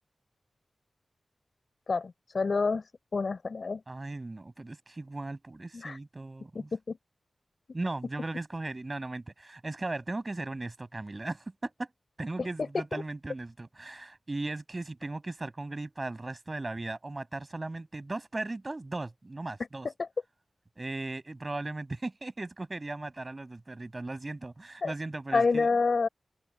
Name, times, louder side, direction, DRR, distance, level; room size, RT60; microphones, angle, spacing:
voice 1, 1.9-3.8 5.7-6.0 6.5-7.0 12.6-13.0 19.8-20.1 24.8-24.9 25.3-26.1, left 4 dB, 60° left, 6.2 m, -28 dB
voice 2, 3.9-6.7 7.7-11.9 12.2-19.9 20.8-25.7, right 2 dB, 35° right, 6.3 m, -37 dB
wide cardioid pair, 70°, 0 cm